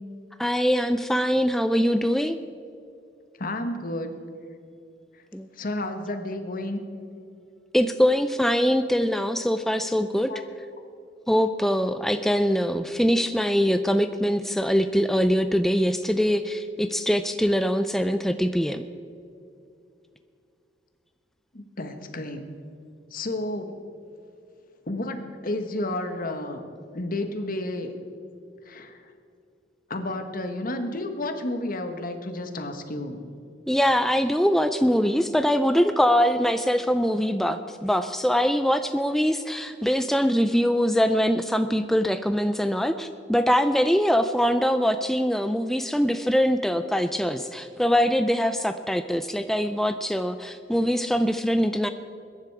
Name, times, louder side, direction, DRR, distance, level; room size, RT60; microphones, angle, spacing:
voice 1, 0.4-2.4 5.3-5.5 7.7-10.3 11.3-18.8 33.7-51.9, equal, ahead, 9 dB, 0.4 m, -23 dB
voice 2, 3.4-4.2 5.6-6.8 10.3-10.4 21.5-22.4 23.1-23.8 24.9-26.6 26.9-27.9 28.7-28.9 29.9-33.2, left 1 dB, 50° left, 7 dB, 1.4 m, -31 dB
21.5 x 10.5 x 4.8 m, 2.6 s
head